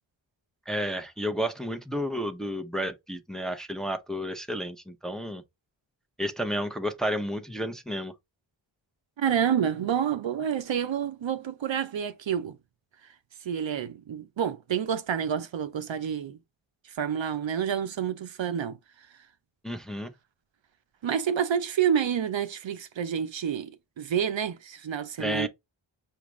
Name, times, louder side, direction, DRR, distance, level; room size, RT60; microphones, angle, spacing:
voice 1, 0.7-5.4 6.2-8.1 19.6-20.1 25.2-25.5, equal, ahead, 0.6 m, -31 dB
voice 2, 9.2-12.6 13.4-16.4 16.9-18.8 21.0-25.5, right 8 dB, 70° right, 0.6 m, -28 dB
6.0 x 2.4 x 3.0 m
wide cardioid pair, 50°, 47 cm